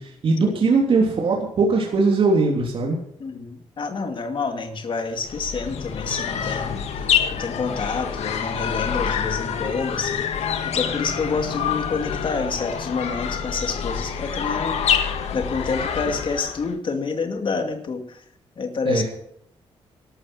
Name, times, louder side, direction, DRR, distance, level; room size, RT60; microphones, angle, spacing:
voice 1, 0.0-3.0 18.8-19.0, right 3 dB, 60° right, -1 dB, 3.3 m, -20 dB
voice 2, 3.2-6.8 7.3-10.3 10.6-15.0 15.3-18.2 18.6-19.0, left 4 dB, 50° left, 7 dB, 2.3 m, -28 dB
sound 1, 5.2-16.7, left 7 dB, 90° left, 1.8 m, -26 dB
13.0 x 12.5 x 6.4 m, 0.67 s
cardioid pair, 105°, 11 cm